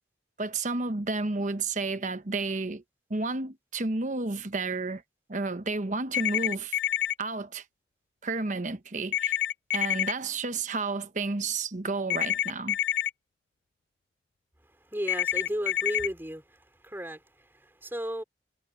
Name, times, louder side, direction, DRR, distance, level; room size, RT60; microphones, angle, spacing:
voice 1, 0.4-2.8 3.1-5.0 5.3-6.8 7.2-7.6 8.2-9.4 9.7-12.8, right 3 dB, 45° right, 1.1 m, -31 dB
sound 1, 6.1-7.1 9.1-10.1 12.1-13.1 15.1-16.1, left 11 dB, 70° left, 0.3 m, -27 dB
voice 2, 14.8-18.2, equal, 15° right, 4.8 m, -35 dB
head